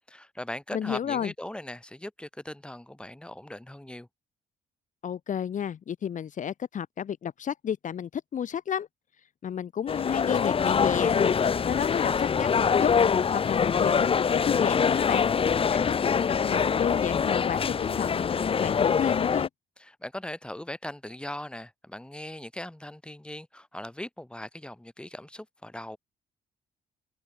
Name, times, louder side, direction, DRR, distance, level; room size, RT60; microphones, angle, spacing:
voice 1, 0.1-4.1 19.8-26.0, left 1 dB, 5° left, 5.7 m, -39 dB
voice 2, 0.7-1.3 5.0-8.9 9.4-12.9 13.3-19.5, left 8 dB, 55° left, 2.0 m, -31 dB
sound 1, 9.9-19.5, left 6 dB, 35° left, 1.0 m, -24 dB
cardioid pair, 105°, 16 cm